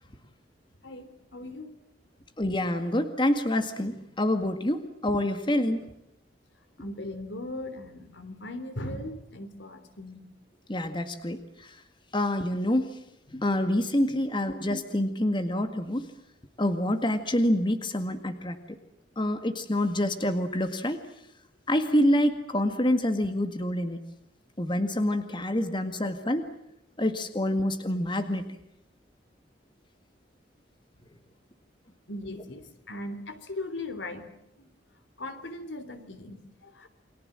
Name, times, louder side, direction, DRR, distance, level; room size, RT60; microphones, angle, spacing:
voice 1, 0.8-1.7 6.8-10.3 32.1-34.3 34.6-34.7 35.2-36.9, left 1 dB, 80° left, 10 dB, 3.5 m, -39 dB
voice 2, 2.4-5.9 10.7-11.8 12.1-12.9 13.3-16.1 16.6-18.8 19.2-21.0 21.7-24.0 24.6-26.5 27.0-28.5, left 1 dB, 25° left, 8 dB, 1.9 m, -27 dB
29.5 x 24.5 x 7.6 m, 0.80 s
head